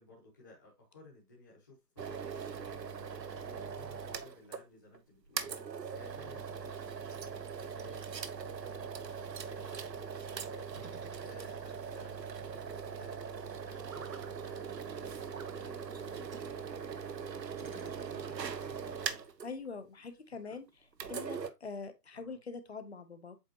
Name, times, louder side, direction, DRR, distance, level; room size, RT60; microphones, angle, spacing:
voice 1, 0.0-12.2 12.5-19.3 20.4-20.6 21.3-21.5 22.1-22.4, left 2 dB, 10° left, 1.1 m, -58 dB
sound 1, 2.0-4.6 4.9-5.0 5.4-19.5 20.9-21.5, right 6 dB, 90° right, 1.1 m, -41 dB
sound 2, 10.7-11.9 13.8-14.3 15.3-15.6 16.3-16.5 17.6-18.4, right 5 dB, 60° right, 1.1 m, -53 dB
voice 2, 19.4-20.7 21.1-23.4, left 4 dB, 40° left, 1.0 m, -43 dB
8.0 x 4.1 x 2.8 m
hypercardioid pair, 175°, 48 cm